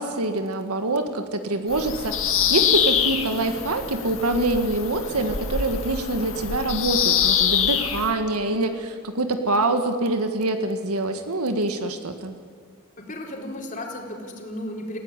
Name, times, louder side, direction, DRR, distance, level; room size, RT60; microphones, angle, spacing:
voice 1, 0.0-2.2 2.5-12.3, right 2 dB, 85° right, 7 dB, 1.8 m, -25 dB
Bird vocalization bird call bird song, 1.7-8.1, left 8 dB, 60° left, 2.1 m, -24 dB
voice 2, 13.0-15.0, left 1 dB, 35° left, 1 dB, 4.1 m, -34 dB
28.5 x 16.5 x 10.0 m, 2.1 s
head